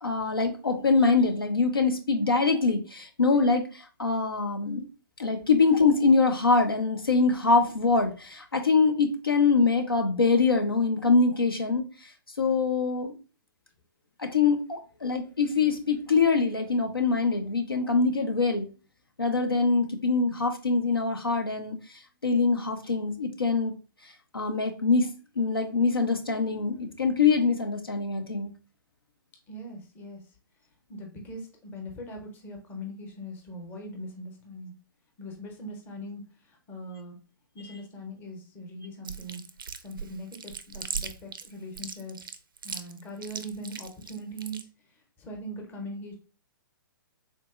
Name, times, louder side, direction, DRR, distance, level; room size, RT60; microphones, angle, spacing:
voice 1, 0.0-4.9 5.2-11.8 12.4-13.1 14.2-18.7 19.2-21.8 22.2-23.7 24.3-25.1 25.4-28.5, left 4 dB, 85° left, 4 dB, 0.6 m, -24 dB
voice 2, 29.5-30.3 30.9-34.7 35.2-37.2 37.5-39.4 39.8-42.4 42.6-46.1, equal, 15° left, 2 dB, 0.7 m, -41 dB
Chewing mastication, 39.0-44.6, right 6 dB, 70° right, 0.4 m, -38 dB
3.7 x 2.6 x 2.3 m, 0.34 s
figure-of-eight pair, 120°, 12 cm